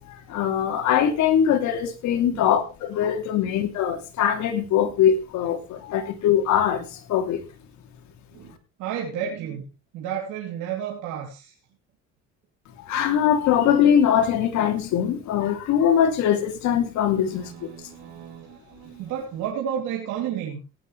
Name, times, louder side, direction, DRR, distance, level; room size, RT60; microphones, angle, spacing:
voice 1, 0.1-7.4 12.8-17.5, left 9 dB, 70° left, 2.9 m, -22 dB
voice 2, 8.3-9.6 9.9-11.5 17.2-20.6, right 9 dB, 80° right, 3.1 m, -32 dB
18.0 x 9.6 x 3.3 m
cardioid pair, 105°, 29 cm